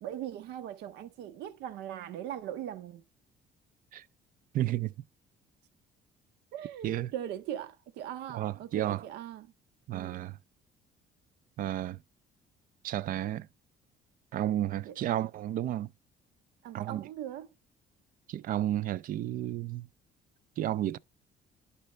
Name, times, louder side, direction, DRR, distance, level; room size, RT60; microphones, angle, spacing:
voice 1, 0.0-3.0 6.5-9.5 9.9-10.3 14.8-15.2 16.6-17.5, right 11 dB, 80° right, 0.7 m, -40 dB
voice 2, 4.5-4.9 6.8-7.1 8.3-9.0 9.9-10.4 11.6-12.0 12.8-13.5 14.3-15.9 16.7-17.0 18.3-19.9 20.6-21.0, right 12 dB, 55° right, 0.4 m, -32 dB
11.5 x 4.2 x 3.2 m
cardioid pair, 110°, 17 cm